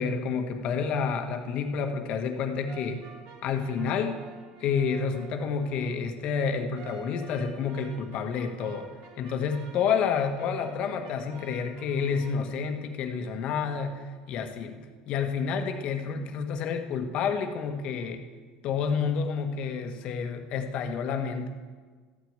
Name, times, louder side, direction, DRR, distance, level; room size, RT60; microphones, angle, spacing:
voice 1, 0.0-3.0 3.4-4.2 4.6-8.9 9.2-14.8 15.1-18.2 18.6-21.5, left 6 dB, 55° left, 6 dB, 1.4 m, -29 dB
sound 1, 2.7-6.0 6.7-12.5, right 4 dB, 65° right, 2.2 m, -50 dB
14.0 x 6.4 x 8.8 m, 1.5 s
supercardioid pair, 105°, 2 cm